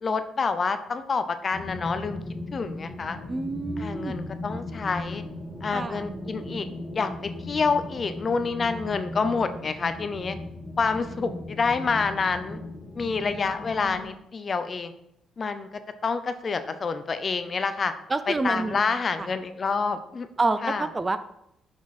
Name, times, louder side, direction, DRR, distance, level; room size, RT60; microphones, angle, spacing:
voice 1, 0.0-2.2 2.5-3.2 3.8-5.2 5.6-6.7 6.9-7.1 7.5-10.4 10.8-12.6 12.9-14.9 15.4-15.7 16.0-17.9 18.3-20.3 20.6-20.9, left 4 dB, 40° left, 10 dB, 0.7 m, -27 dB
sound 1, 1.5-14.1, left 2 dB, 20° left, 1.5 m, -37 dB
voice 2, 3.3-4.3 5.7-6.1 11.2-11.4 18.1-18.8 19.2-19.3 20.4-21.2, right 3 dB, 25° right, 12 dB, 0.5 m, -28 dB
6.3 x 5.9 x 4.2 m, 0.78 s
cardioid pair, 90°, 0 cm